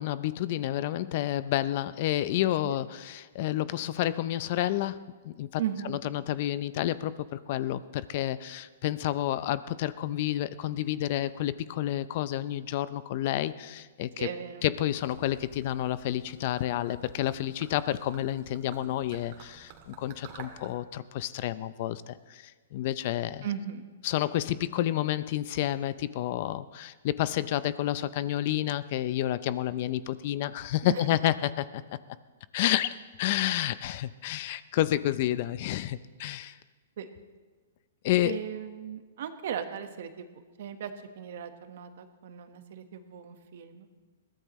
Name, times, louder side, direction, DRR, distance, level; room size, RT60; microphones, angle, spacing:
voice 1, 0.0-14.3 14.6-23.5 24.0-31.8 32.5-36.6 38.0-38.4, left 13 dB, 45° left, 16 dB, 0.5 m, -30 dB
voice 2, 5.6-6.0 14.2-14.7 23.4-23.9 30.8-31.1 37.0-37.1 38.2-40.3 40.6-43.9, right 9 dB, 60° right, 8 dB, 1.3 m, -37 dB
Gurgling / Liquid, 15.0-20.8, right 6 dB, 45° right, 2.1 m, -51 dB
21.5 x 16.0 x 3.1 m, 1.4 s
hypercardioid pair, 145°, 0 cm